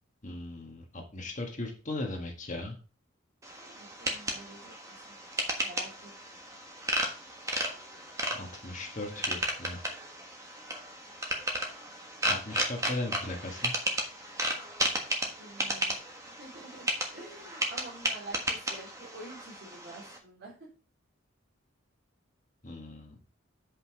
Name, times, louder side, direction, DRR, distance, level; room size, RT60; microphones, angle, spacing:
voice 1, 0.2-2.7 8.3-9.8 12.3-13.7 22.6-23.2, left 2 dB, 35° left, 1 dB, 1.6 m, -38 dB
sound 1, 3.4-20.2, right 1 dB, 15° right, 1.3 m, -34 dB
voice 2, 3.6-4.7 5.1-5.2 5.6-6.1 15.4-15.9 16.4-16.8 17.1-20.5, right 2 dB, 55° right, -6 dB, 3.6 m, -47 dB
8.0 x 5.5 x 4.7 m, 0.37 s
head